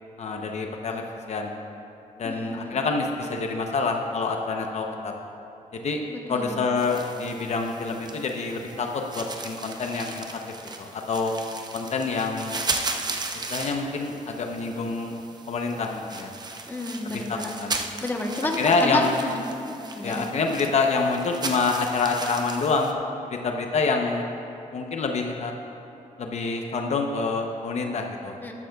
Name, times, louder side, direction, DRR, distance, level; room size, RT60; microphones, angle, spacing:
voice 1, 0.2-1.0 1.3-1.5 2.2-5.1 5.7-6.0 6.3-10.3 10.8-11.3 11.7-12.6 13.3-15.1 15.5-16.3 17.0-17.8 18.6-19.2 20.0-22.9 23.3-24.3 24.7-25.5 26.2-28.3, left 4 dB, 55° left, 3 dB, 0.7 m, -27 dB
voice 2, 2.2-2.9 6.1-6.6 16.7-17.5 18.0-19.4 20.0-20.3 28.4-28.5, left 1 dB, 15° left, 1 dB, 1.0 m, -30 dB
sound 1, 6.8-22.9, right 3 dB, 30° right, 0.7 m, -36 dB
13.0 x 12.0 x 2.3 m, 2.9 s
cardioid pair, 110°, 14 cm